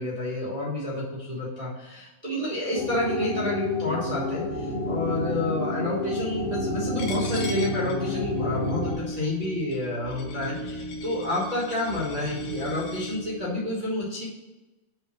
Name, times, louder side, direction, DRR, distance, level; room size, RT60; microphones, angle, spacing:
voice 1, 0.0-14.2, left 1 dB, 85° right, -8 dB, 0.3 m, -29 dB
sound 1, 2.8-8.9, left 2 dB, 85° left, 3.5 m, -29 dB
sound 2, 4.4-13.7, equal, 70° right, 1.4 m, -38 dB
Coin (dropping), 7.0-13.2, left 4 dB, 65° left, 1.8 m, -43 dB
5.7 x 3.9 x 6.0 m, 1.1 s
omnidirectional pair, 3.5 m